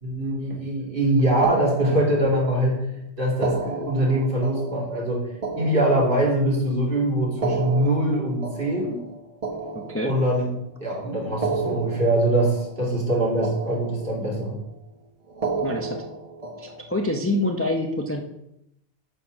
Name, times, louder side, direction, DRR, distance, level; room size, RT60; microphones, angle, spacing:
voice 1, 0.0-2.9 3.2-5.2 5.6-9.0 10.0-10.5 10.8-14.6, right 1 dB, 55° right, -2 dB, 2.5 m, -23 dB
sound 1, 1.4-2.7 3.3-6.6 7.3-10.6 11.3-13.2 13.4-14.5 15.3-17.1, right 4 dB, 35° right, 0.9 m, -32 dB
voice 2, 9.7-10.1 15.6-16.0 16.6-18.2, left 1 dB, 15° left, 3 dB, 0.6 m, -26 dB
9.0 x 4.3 x 6.1 m, 0.81 s
omnidirectional pair, 1.1 m